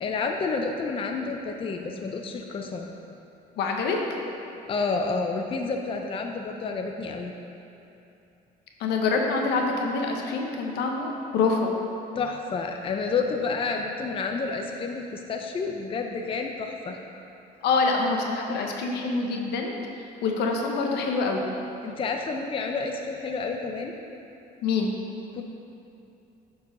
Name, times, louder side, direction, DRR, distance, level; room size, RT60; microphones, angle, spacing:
voice 1, 0.0-2.9 4.7-7.3 12.2-17.0 21.8-23.9 25.3-25.4, left 4 dB, 30° left, 3 dB, 0.6 m, -30 dB
voice 2, 3.6-4.0 8.8-11.7 17.6-19.7 20.2-21.5 24.6-24.9, left 4 dB, 80° left, 1 dB, 1.1 m, -25 dB
8.7 x 4.7 x 5.3 m, 2.8 s
cardioid pair, 110°, 17 cm